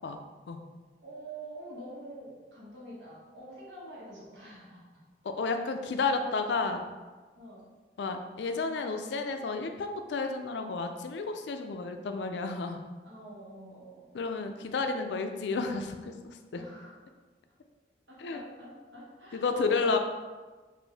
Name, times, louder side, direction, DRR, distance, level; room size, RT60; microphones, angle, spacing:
voice 1, 1.0-5.0 7.3-7.6 13.0-14.1 16.5-16.9 18.1-20.0, right 1 dB, 75° right, -5 dB, 1.3 m, -46 dB
voice 2, 5.2-6.8 8.0-12.9 14.1-16.6 18.2-18.4 19.3-20.0, left 4 dB, 70° left, 6 dB, 0.4 m, -31 dB
4.3 x 2.6 x 3.3 m, 1.3 s
head